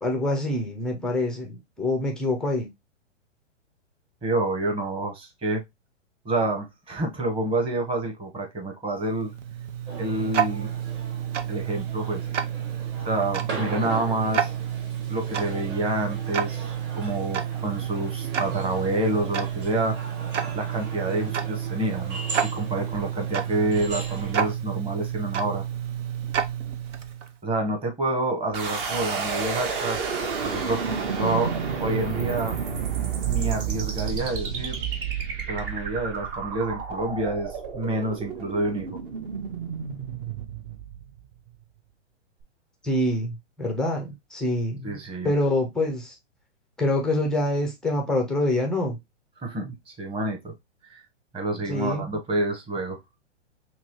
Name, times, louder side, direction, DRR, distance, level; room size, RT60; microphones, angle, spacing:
voice 1, 0.0-2.7 42.8-45.0 45.2-46.2 46.8-49.0 51.5-52.1, left 1 dB, ahead, 0.4 m, -26 dB
voice 2, 4.2-5.6 6.2-9.3 10.0-10.7 11.5-12.2 13.0-14.5 15.1-20.0 20.5-25.6 27.4-30.0 30.4-31.5 31.8-32.6 33.2-34.8 35.5-39.0 44.8-45.3 49.4-50.5 50.8-51.0 51.3-53.0, right 2 dB, 15° right, 1.1 m, -28 dB
Tick-tock, 9.1-27.4, right 9 dB, 80° right, 0.8 m, -30 dB
sound 1, 9.9-24.5, right 4 dB, 30° right, 1.4 m, -39 dB
sound 2, 28.5-41.5, right 6 dB, 45° right, 1.2 m, -30 dB
5.9 x 2.3 x 3.0 m
hypercardioid pair, 125°, 36 cm